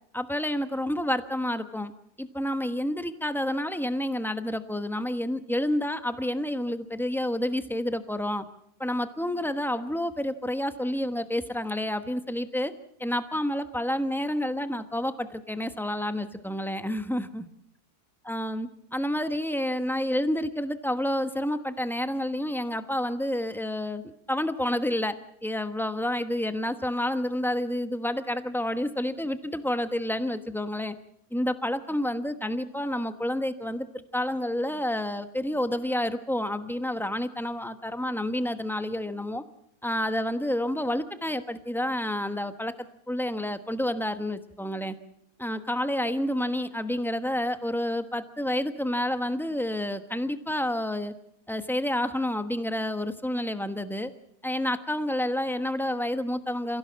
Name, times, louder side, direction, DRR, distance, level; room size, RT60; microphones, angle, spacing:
voice 1, 0.1-1.9 2.2-8.4 8.8-12.7 13.0-17.5 18.2-25.2 25.4-31.0 31.3-33.9 34.1-39.4 39.8-44.9 45.4-51.1 51.5-54.1 54.4-56.8, left 1 dB, ahead, 9 dB, 0.9 m, -29 dB
28.5 x 16.5 x 7.5 m, 0.73 s
omnidirectional pair, 1.7 m